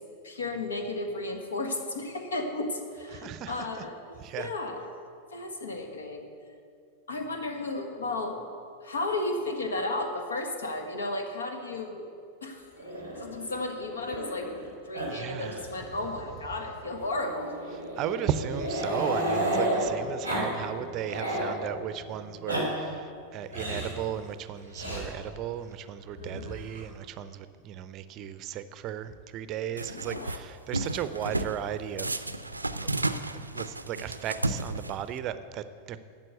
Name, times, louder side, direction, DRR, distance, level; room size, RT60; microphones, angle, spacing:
voice 1, 0.2-4.9 5.3-6.3 7.1-8.4 8.8-12.1 12.4-12.8 13.1-14.5 14.8-17.6 26.2-26.6 29.8-30.4, left 2 dB, 70° left, 4 dB, 1.5 m, -34 dB
voice 2, 3.1-3.6 4.2-4.5 15.1-15.7 18.0-32.3 32.8-33.2 33.5-36.0, right 10 dB, 35° right, 13 dB, 0.6 m, -35 dB
Growling, 12.8-14.6 14.9-15.1 15.3-15.5 15.8-15.9 17.0-19.8 20.2-20.5 20.8-21.5 22.2-22.6 23.5-23.9 24.7-25.0 26.1-26.8, right 1 dB, 90° left, 3.6 m, -32 dB
sound 1, 16.8-23.4, right 1 dB, 25° left, 1.8 m, -46 dB
sound 2, 29.8-30.4 30.7-31.6 32.0-35.2, right 2 dB, 85° right, 0.5 m, -32 dB
12.0 x 7.6 x 7.9 m, 2.3 s
figure-of-eight pair, 90°, 0 cm